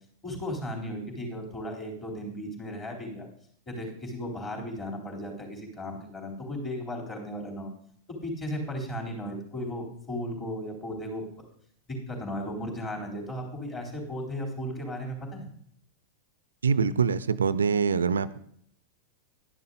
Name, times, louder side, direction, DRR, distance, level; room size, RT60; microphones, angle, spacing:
voice 1, 0.2-3.3 3.7-7.7 8.2-11.2 11.9-15.5, equal, 25° left, -1 dB, 3.7 m, -35 dB
voice 2, 16.6-18.4, right 6 dB, 70° right, 16 dB, 0.4 m, -24 dB
11.5 x 10.5 x 4.0 m, 0.64 s
figure-of-eight pair, 90°, 0 cm